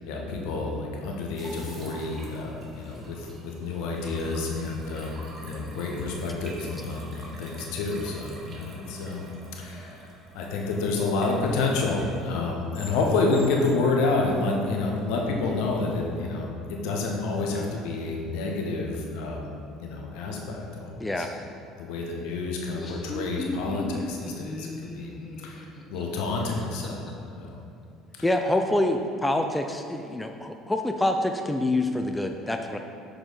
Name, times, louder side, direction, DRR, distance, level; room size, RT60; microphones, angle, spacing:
voice 1, 0.1-9.3 9.6-10.0 10.3-19.5 19.8-21.3 21.8-25.1 25.4-27.0 27.4-27.6, left 3 dB, 65° left, 0 dB, 1.0 m, -29 dB
sound 1, 1.4-12.3, right 1 dB, 35° right, 1.3 m, -45 dB
sound 2, 11.4-16.3, left 1 dB, 90° left, 1.1 m, -52 dB
voice 2, 21.0-21.3 28.2-32.8, left 1 dB, 10° left, 5 dB, 0.4 m, -26 dB
Laughter, 22.5-27.1, left 2 dB, 30° left, 0.8 m, -36 dB
6.3 x 4.9 x 4.0 m, 2.6 s
hypercardioid pair, 60°, 0 cm